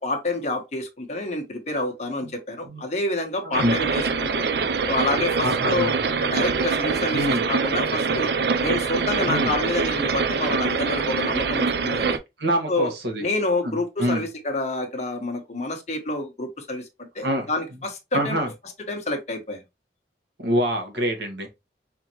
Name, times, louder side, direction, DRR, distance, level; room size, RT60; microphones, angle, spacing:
voice 1, 0.0-4.5 4.9-5.9 6.2-7.2 7.5-8.3 8.6-12.2 12.7-12.9 13.2-18.4 18.9-19.6, left 2 dB, 40° left, 1.1 m, -28 dB
voice 2, 3.4-3.8 5.4-6.0 7.1-7.4 9.3-9.5 12.4-13.2 13.6-14.2 17.2-17.5 18.1-18.5 20.4-21.5, equal, 85° right, 1.5 m, -25 dB
sound 1, 3.5-12.2, right 5 dB, 70° right, 0.5 m, -24 dB
4.4 x 3.6 x 3.0 m
head